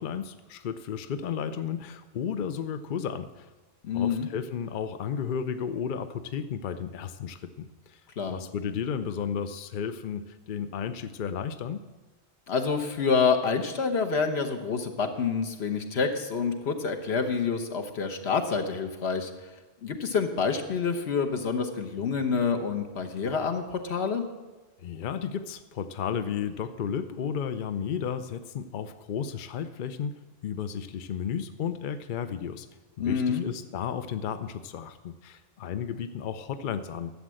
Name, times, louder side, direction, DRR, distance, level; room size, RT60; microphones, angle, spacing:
voice 1, 0.0-3.5 3.9-8.0 8.3-11.8 24.8-30.1 30.4-32.7 33.0-37.1, left 7 dB, 60° left, 11 dB, 0.7 m, -33 dB
voice 2, 3.8-4.3 8.2-8.4 12.5-19.3 19.8-24.2 33.0-33.4, left 5 dB, 85° left, 4 dB, 1.3 m, -27 dB
11.5 x 7.4 x 7.6 m, 1.2 s
omnidirectional pair, 1.1 m